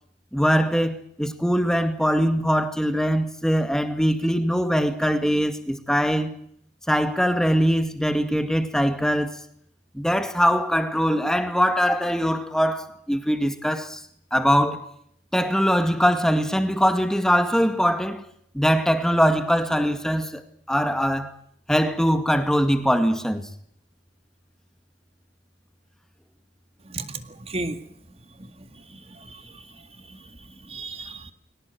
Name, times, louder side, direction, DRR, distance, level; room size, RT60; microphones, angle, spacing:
voice 1, 0.3-6.3 6.9-9.4 9.9-14.0 14.3-14.9 15.3-18.2 18.5-20.4 20.7-21.4 21.7-23.5, equal, 5° left, 2.2 m, -22 dB
voice 2, 26.9-27.8 28.9-29.6 30.1-30.2 30.7-31.3, right 2 dB, 35° right, 2.1 m, -34 dB
23.5 x 19.0 x 9.4 m
head